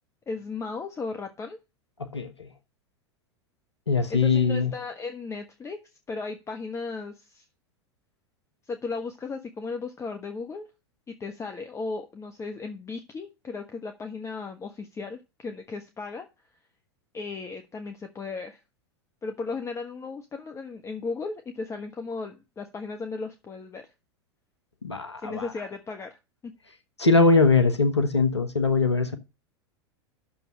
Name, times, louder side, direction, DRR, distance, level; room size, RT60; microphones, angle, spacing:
voice 1, 0.3-1.6 4.1-5.8 6.1-7.4 8.7-10.7 11.1-16.3 17.1-18.6 19.2-23.8 25.2-26.2 26.4-26.5, left 4 dB, 20° left, 1.2 m, -35 dB
voice 2, 2.0-2.5 3.9-4.7 24.8-25.5 27.0-29.2, left 4 dB, 90° left, 1.2 m, -22 dB
8.8 x 6.8 x 6.0 m
figure-of-eight pair, 90°, 14 cm